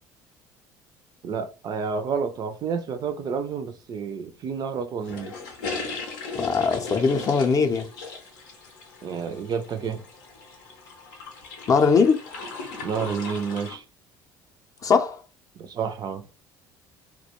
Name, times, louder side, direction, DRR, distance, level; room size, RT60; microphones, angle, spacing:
voice 1, 1.2-5.3 9.0-10.0 12.8-13.8 15.6-16.3, right 6 dB, 45° right, 0.4 m, -30 dB
sound 1, 5.0-13.8, left 4 dB, 85° left, 0.6 m, -37 dB
voice 2, 6.3-7.9 11.7-12.2 14.8-15.2, left 5 dB, 35° left, 0.5 m, -20 dB
2.2 x 2.2 x 2.8 m
hypercardioid pair, 70°, 10 cm